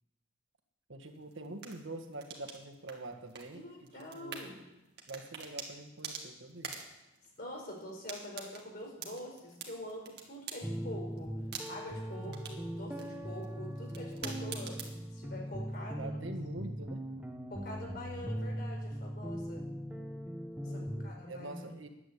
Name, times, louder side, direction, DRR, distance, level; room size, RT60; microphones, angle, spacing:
voice 1, 0.9-4.5 5.1-6.9 12.2-12.6 15.9-17.0 20.6-21.9, right 2 dB, 80° right, 6 dB, 1.5 m, -45 dB
sound 1, 1.0-15.0, right 5 dB, 55° right, 2.2 m, -48 dB
voice 2, 3.5-4.6 7.4-11.3 11.7-16.1 17.5-19.7 20.6-21.7, left 1 dB, 50° left, 0 dB, 4.7 m, -45 dB
sound 2, 10.6-21.1, equal, 5° right, 1.2 m, -40 dB
11.5 x 9.9 x 8.2 m, 0.91 s
head